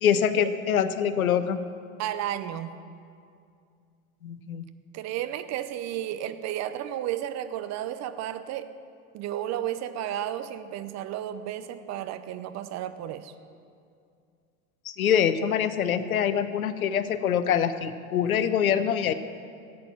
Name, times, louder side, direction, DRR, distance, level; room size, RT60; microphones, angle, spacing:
voice 1, 0.0-1.6 4.2-4.6 14.8-19.1, left 8 dB, 80° left, 12 dB, 0.8 m, -24 dB
voice 2, 2.0-2.7 4.9-8.7 9.1-13.3, right 11 dB, 40° right, 11 dB, 0.8 m, -33 dB
14.5 x 8.7 x 5.9 m, 2.3 s
hypercardioid pair, 85°, 42 cm